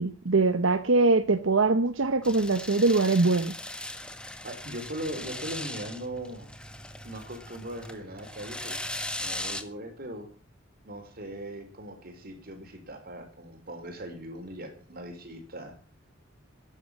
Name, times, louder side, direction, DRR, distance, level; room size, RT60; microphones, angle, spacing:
voice 1, 0.0-3.5, right 3 dB, 80° right, 9 dB, 1.0 m, -23 dB
sound 1, 2.2-9.6, left 1 dB, 5° left, 1.4 m, -39 dB
voice 2, 4.4-6.5 7.0-8.8 9.2-10.3 10.8-15.8, right 1 dB, 50° right, 6 dB, 4.5 m, -39 dB
13.5 x 11.0 x 7.3 m, 0.38 s
head